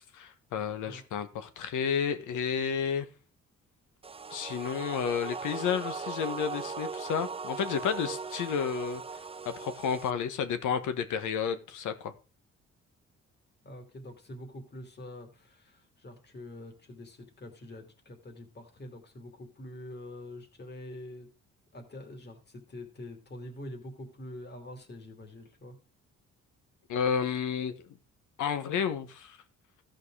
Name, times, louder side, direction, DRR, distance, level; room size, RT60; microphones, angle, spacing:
voice 1, 0.1-3.1 4.3-9.0 9.4-12.1 26.9-27.9 28.4-29.4, left 7 dB, 80° left, 11 dB, 1.3 m, -31 dB
voice 2, 0.8-1.2 13.6-21.3 21.7-25.8, left 1 dB, 35° left, 4 dB, 2.9 m, -45 dB
sound 1, 4.0-10.1, right 5 dB, 20° right, 0.5 m, -39 dB
14.5 x 5.3 x 4.9 m, 0.33 s
cardioid pair, 90°, 30 cm